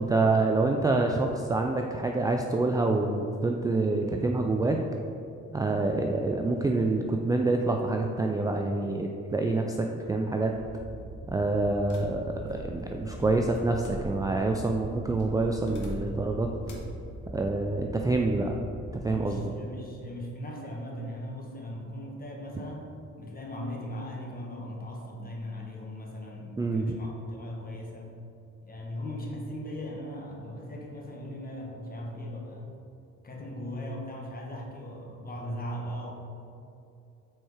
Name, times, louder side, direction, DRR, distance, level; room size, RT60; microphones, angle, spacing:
voice 1, 0.0-4.8 5.5-10.5 11.3-16.5 17.3-18.6 18.9-19.4 26.6-26.9, right 2 dB, 15° right, 2 dB, 0.3 m, -27 dB
sound 1, 10.5-19.3, right 1 dB, 45° right, 0.7 m, -42 dB
sound 2, 11.9-14.5 15.2-16.3 16.7-17.0, equal, 75° left, 1.1 m, -43 dB
voice 2, 19.0-28.2 28.6-32.7 33.2-36.1, equal, 30° left, -1 dB, 1.2 m, -38 dB
4.5 x 4.4 x 4.8 m, 2.6 s
cardioid pair, 90°, 30 cm